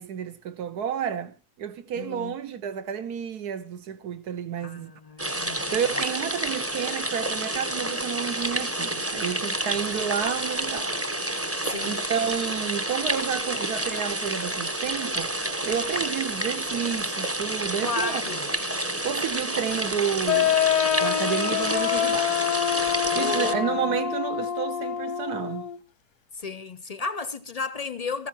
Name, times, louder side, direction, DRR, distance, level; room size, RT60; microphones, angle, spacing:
voice 1, 0.0-4.9 5.7-10.9 11.8-15.3 15.6-18.2 19.0-20.5 21.0-22.4 23.1-25.7, right 8 dB, 85° right, 1.5 m, -30 dB
voice 2, 1.9-2.4 4.6-5.8 11.6-12.0 17.8-18.5 23.1-23.8 26.3-28.3, left 4 dB, 50° left, 0.4 m, -33 dB
sound 1, 5.2-23.5, right 1 dB, 10° right, 0.7 m, -29 dB
sound 2, 20.3-25.8, left 10 dB, 90° left, 1.4 m, -26 dB
18.5 x 15.0 x 2.9 m
omnidirectional pair, 1.6 m